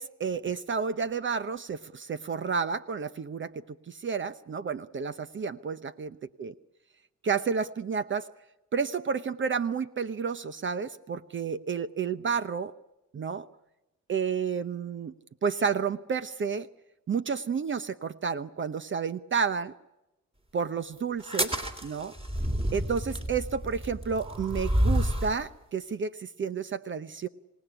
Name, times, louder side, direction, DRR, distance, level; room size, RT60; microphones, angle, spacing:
voice 1, 0.0-3.5 3.9-6.5 7.2-8.3 8.7-12.7 13.1-13.5 14.1-15.1 15.4-16.7 17.1-19.7 20.5-21.5 21.8-22.1 22.7-27.3, right 6 dB, 40° right, 13 dB, 0.8 m, -31 dB
sound 1, 21.2-25.4, equal, 20° right, 3.1 m, -29 dB
27.0 x 18.0 x 10.0 m, 1.0 s
cardioid pair, 90°, 30 cm